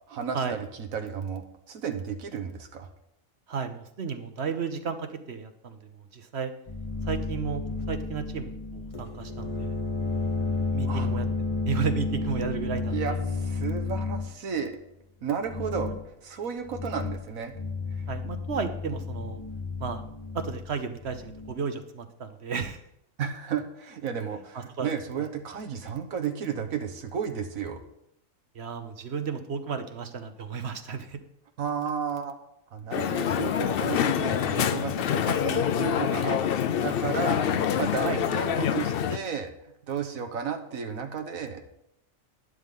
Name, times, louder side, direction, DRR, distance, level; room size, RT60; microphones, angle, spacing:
voice 1, 0.1-2.9 10.8-11.1 12.9-14.7 15.2-15.9 16.2-17.5 17.9-18.0 23.2-27.8 31.6-32.3 32.7-36.4 36.8-39.5 39.9-41.6, right 7 dB, 85° right, 6 dB, 1.5 m, -33 dB
voice 2, 3.5-6.5 7.0-9.8 10.7-11.3 11.7-12.9 18.1-19.4 19.8-20.0 20.3-22.8 24.5-24.9 25.2-25.3 28.5-31.2 38.0-38.2, right 6 dB, 55° right, 8 dB, 1.1 m, -33 dB
sound 1, 6.7-14.3 15.4-16.0 16.6-17.3 17.5-21.5, left 4 dB, 25° left, 1.1 m, -32 dB
Crowd, 32.9-39.2, left 8 dB, 60° left, 0.6 m, -26 dB
12.0 x 10.5 x 3.7 m, 0.77 s
omnidirectional pair, 1.4 m